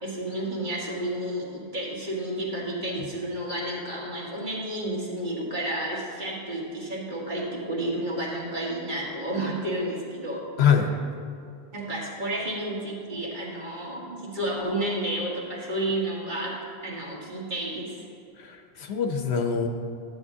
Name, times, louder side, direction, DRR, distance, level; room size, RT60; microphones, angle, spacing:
voice 1, 0.0-10.4 11.7-16.6 16.8-18.0, right 1 dB, 50° right, -5 dB, 1.8 m, -31 dB
voice 2, 10.6-10.9 18.4-19.7, left 7 dB, 80° left, 4 dB, 1.0 m, -24 dB
12.5 x 8.2 x 2.7 m, 2.5 s
omnidirectional pair, 1.1 m